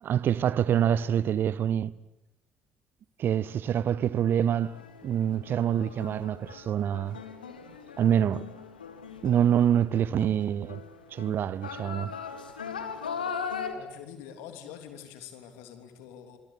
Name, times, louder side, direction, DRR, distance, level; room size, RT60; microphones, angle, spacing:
voice 1, 0.0-1.9 3.2-4.8 5.0-7.2 8.0-8.4 9.2-10.8 11.1-12.1, right 9 dB, 45° right, 0.9 m, -26 dB
sound 1, 4.6-13.7, left 6 dB, 80° left, 1.9 m, -39 dB
voice 2, 13.7-16.4, left 9 dB, 65° left, 3.3 m, -45 dB
26.0 x 25.5 x 8.7 m
figure-of-eight pair, 50°, 5 cm